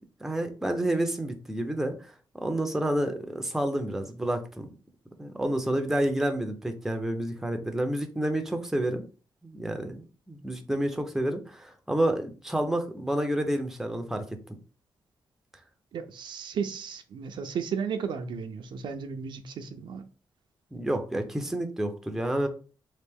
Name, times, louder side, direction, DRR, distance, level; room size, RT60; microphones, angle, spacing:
voice 1, 0.2-4.7 5.2-9.0 9.4-14.2 20.7-22.5, right 1 dB, 5° right, 0.5 m, -29 dB
voice 2, 15.9-20.1, right 6 dB, 70° right, 0.4 m, -34 dB
3.2 x 2.5 x 3.4 m
cardioid pair, 115°, 8 cm